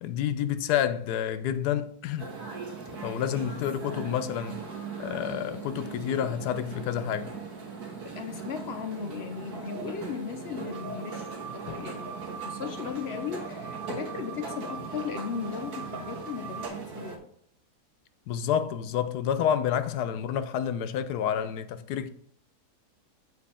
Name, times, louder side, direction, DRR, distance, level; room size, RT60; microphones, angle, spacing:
voice 1, 0.0-2.3 2.9-4.6 5.0-7.3 11.7-11.9 18.3-22.1, left 9 dB, 90° left, 1.2 m, -29 dB
sound 1, 2.2-17.2, right 5 dB, 80° right, 1.9 m, -39 dB
voice 2, 8.0-17.2, left 7 dB, 70° left, 0.6 m, -37 dB
sound 2, 10.7-16.7, right 8 dB, 60° right, 0.6 m, -43 dB
7.3 x 4.2 x 4.2 m
omnidirectional pair, 1.6 m